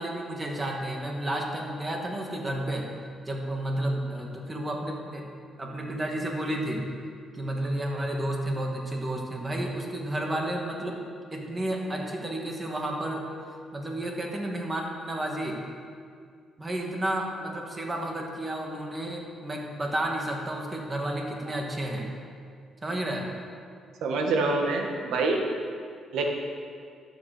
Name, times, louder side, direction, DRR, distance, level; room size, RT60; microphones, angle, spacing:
voice 1, 0.0-2.9 3.3-5.2 5.6-6.8 7.3-11.0 11.3-13.2 13.7-15.6 16.6-22.1 22.8-23.3, right 1 dB, 25° right, 0 dB, 2.2 m, -31 dB
voice 2, 24.0-25.4 26.1-26.3, right 3 dB, 80° right, 2 dB, 1.7 m, -26 dB
12.0 x 7.5 x 6.9 m, 2.2 s
cardioid pair, 90°, 0 cm